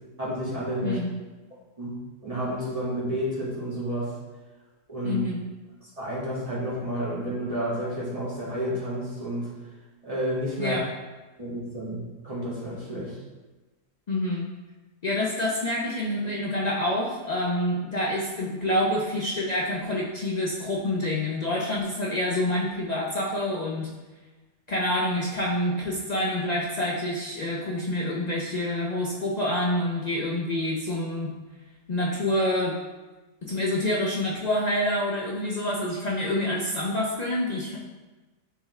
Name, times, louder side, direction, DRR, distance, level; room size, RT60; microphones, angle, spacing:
voice 1, 0.2-1.0 1.8-1.9 2.2-4.1 4.9-5.2 5.8-9.5 10.0-10.8 11.4-12.0 12.2-13.2, equal, 20° right, -8 dB, 2.0 m, -30 dB
voice 2, 0.8-1.1 5.0-5.4 10.6-10.8 14.1-14.5 15.0-23.9 24.7-31.3 31.9-32.8 33.4-37.8, left 1 dB, 80° left, -4 dB, 0.3 m, -27 dB
8.6 x 3.6 x 3.2 m, 1.2 s
omnidirectional pair, 1.7 m